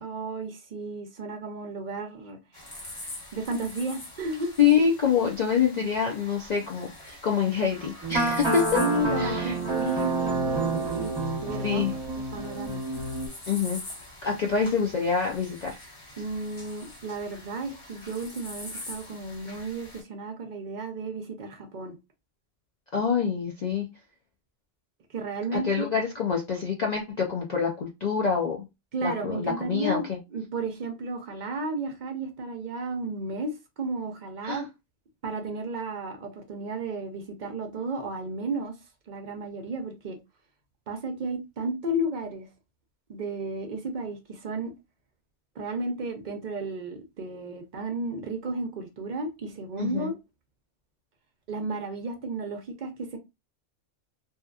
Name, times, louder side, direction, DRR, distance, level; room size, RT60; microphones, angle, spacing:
voice 1, 0.0-2.4 3.3-4.5 8.8-11.1 11.4-11.9 12.3-12.8 16.2-22.0 25.1-25.9 28.9-34.6 35.2-38.8 39.1-40.2 40.9-42.5 43.1-44.7 45.6-50.1 51.5-53.2, right 2 dB, 60° right, 0.5 m, -33 dB
sound 1, 2.5-20.0, left 1 dB, 30° left, 0.8 m, -44 dB
voice 2, 4.6-8.8 9.2-9.6 11.6-12.0 13.5-13.8 14.2-15.8 22.9-23.9 25.5-28.7 29.0-30.2 34.4-34.6 49.8-50.1, left 7 dB, 75° left, 0.4 m, -26 dB
sound 2, 8.0-13.3, right 2 dB, 25° right, 0.8 m, -28 dB
2.7 x 2.3 x 2.3 m
omnidirectional pair, 1.3 m